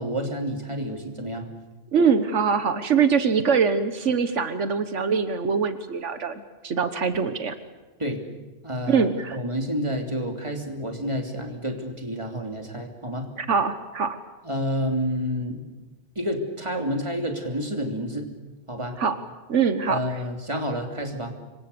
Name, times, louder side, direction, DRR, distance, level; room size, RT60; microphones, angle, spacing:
voice 1, 0.0-1.5 8.0-8.2 8.6-9.1 9.3-13.3 14.4-15.6 16.1-18.3 18.7-19.0 19.9-21.3, equal, 25° right, 3 dB, 3.1 m, -29 dB
voice 2, 1.9-7.5 8.9-9.4 13.4-14.2 19.0-19.1 19.5-20.2, right 6 dB, 80° right, 10 dB, 1.6 m, -23 dB
27.0 x 23.5 x 6.9 m, 1.2 s
omnidirectional pair, 1.2 m